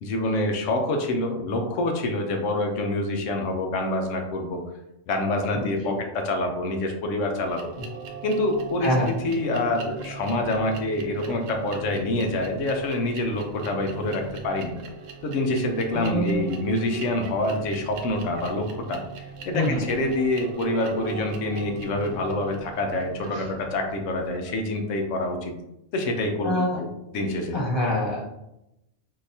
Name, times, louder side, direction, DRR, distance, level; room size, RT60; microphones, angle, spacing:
voice 1, 0.0-4.6 5.1-7.7 8.2-14.7 15.2-19.0 19.5-25.5 25.9-27.6, left 1 dB, 75° left, 3 dB, 1.0 m, -26 dB
voice 2, 5.5-6.0 8.8-9.1 15.9-16.5 19.5-19.8 23.3-23.4 26.4-26.8 27.5-28.2, left 1 dB, 25° left, -5 dB, 1.0 m, -25 dB
sound 1, 7.4-24.7, right 6 dB, 80° right, 1.0 m, -40 dB
3.7 x 2.7 x 2.7 m, 0.86 s
omnidirectional pair, 1.3 m